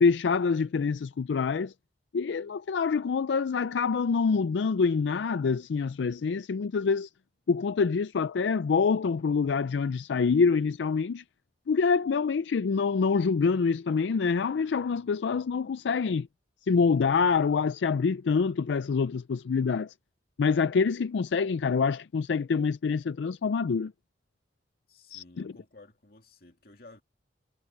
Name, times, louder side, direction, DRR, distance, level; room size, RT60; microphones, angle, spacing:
voice 1, 0.0-1.7 2.1-7.1 7.5-11.2 11.7-16.3 16.7-19.9 20.4-23.9 25.1-25.5, left 5 dB, 85° left, 0.4 m, -26 dB
voice 2, 24.9-27.0, left 2 dB, 55° left, 2.4 m, -54 dB
head